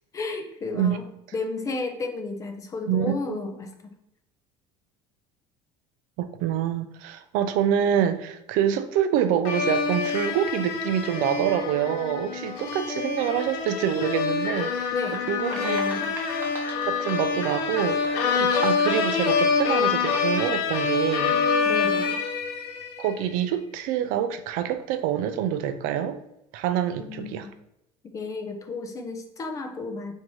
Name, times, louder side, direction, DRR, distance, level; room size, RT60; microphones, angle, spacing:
voice 1, 0.1-3.7 14.9-16.1 21.6-22.2 27.0-27.5 28.0-30.1, left 3 dB, 20° left, 5 dB, 0.4 m, -33 dB
voice 2, 2.9-3.4 6.2-15.0 15.3-15.8 16.9-21.4 23.0-26.2 26.5-27.5, right 9 dB, 65° right, 9 dB, 0.4 m, -26 dB
sound 1, 9.5-23.1, left 5 dB, 80° left, 0.6 m, -26 dB
sound 2, 15.0-18.5, right 2 dB, 15° right, 0.9 m, -42 dB
4.7 x 2.7 x 3.0 m, 0.84 s
cardioid pair, 155°, 15 cm